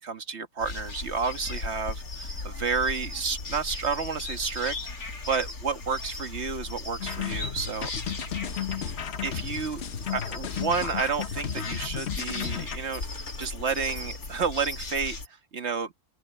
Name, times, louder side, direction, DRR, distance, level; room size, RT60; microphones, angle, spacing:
voice 1, 0.0-7.9 9.2-9.8 10.1-15.9, right 5 dB, 45° right, 1.8 m, -31 dB
sound 1, 0.6-15.3, left 3 dB, 70° left, 3.0 m, -37 dB
sound 2, 7.0-12.8, left 8 dB, 50° left, 1.1 m, -34 dB
open air
omnidirectional pair, 1.6 m